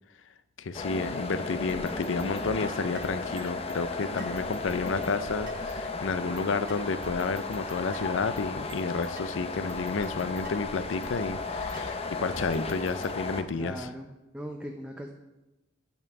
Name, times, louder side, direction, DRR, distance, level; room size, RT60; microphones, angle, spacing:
voice 1, 0.6-13.9, left 4 dB, 80° left, 13 dB, 0.5 m, -31 dB
sound 1, 0.7-13.4, left 3 dB, 30° left, 0.6 m, -35 dB
sound 2, 1.7-3.8 4.4-6.0 6.4-6.5 7.0-9.1 9.7-12.0 12.4-13.4, right 2 dB, 85° right, 1.2 m, -49 dB
sound 3, 2.9-3.2 4.2-4.4 5.5-5.7 6.7-7.0 7.9-8.1 9.2-9.4 10.4-10.7 11.7-12.0, right 4 dB, 45° right, 0.9 m, -51 dB
voice 2, 13.5-15.1, equal, 5° right, 2 dB, 0.6 m, -39 dB
9.4 x 5.5 x 6.0 m, 1.0 s
head